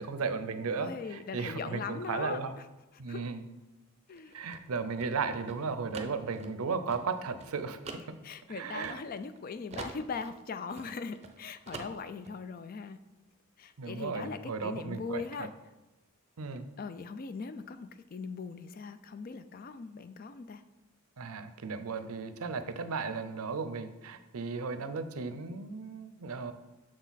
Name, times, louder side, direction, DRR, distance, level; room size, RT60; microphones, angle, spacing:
voice 1, 0.0-2.6 3.0-3.5 4.3-7.8 8.5-9.0 13.8-15.5 16.4-16.7 21.2-26.5, right 4 dB, 80° right, 11 dB, 0.6 m, -35 dB
voice 2, 0.8-2.4 3.1-3.3 4.1-4.3 8.2-13.0 13.6-15.5 16.8-20.6, left 5 dB, 40° left, 11 dB, 0.3 m, -40 dB
sound 1, 4.1-9.4 9.7-11.4 11.7-12.4, right 3 dB, 30° right, 0.5 m, -45 dB
6.4 x 6.1 x 4.0 m, 1.1 s
head